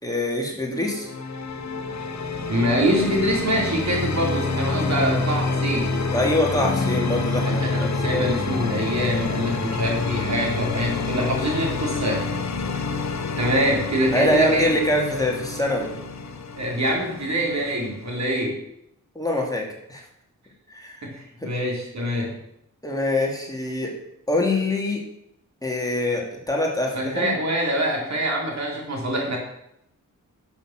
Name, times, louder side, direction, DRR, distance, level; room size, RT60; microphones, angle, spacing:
voice 1, 0.0-1.1 6.1-7.6 8.1-8.2 9.4-9.5 14.1-15.9 19.1-20.0 20.7-21.1 21.4-21.5 22.8-23.9 24.3-25.0 25.6-27.3, left 1 dB, 10° left, -1 dB, 2.8 m, -24 dB
sound 1, 0.7-18.5, left 3 dB, 55° left, 1.3 m, -28 dB
voice 2, 2.5-5.9 7.4-12.3 13.4-14.7 16.6-18.6 21.0-22.3 26.9-29.4, equal, 55° right, 0 dB, 4.0 m, -24 dB
11.5 x 7.2 x 7.6 m, 0.78 s
wide cardioid pair, 105°, 32 cm